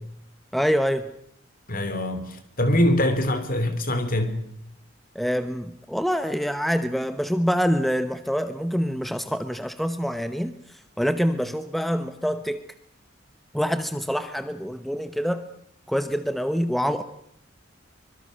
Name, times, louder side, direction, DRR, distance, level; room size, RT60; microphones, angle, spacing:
voice 1, 0.5-1.1 5.1-12.6 13.5-15.5 15.9-17.0, equal, ahead, 0.9 m, -26 dB
voice 2, 1.7-4.4, left 1 dB, 45° left, 2.9 m, -23 dB
24.5 x 22.5 x 6.4 m
head